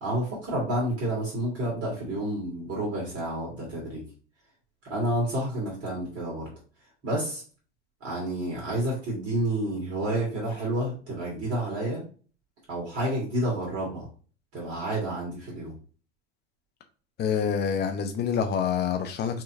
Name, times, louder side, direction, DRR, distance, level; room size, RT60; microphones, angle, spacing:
voice 1, 0.0-4.0 4.8-6.5 7.0-7.4 8.0-12.0 12.7-14.1 14.5-15.7, right 1 dB, 40° right, -4 dB, 1.9 m, -29 dB
voice 2, 17.2-19.4, left 7 dB, 30° left, 6 dB, 0.7 m, -27 dB
4.8 x 2.9 x 2.7 m, 0.39 s
figure-of-eight pair, 75°, 36 cm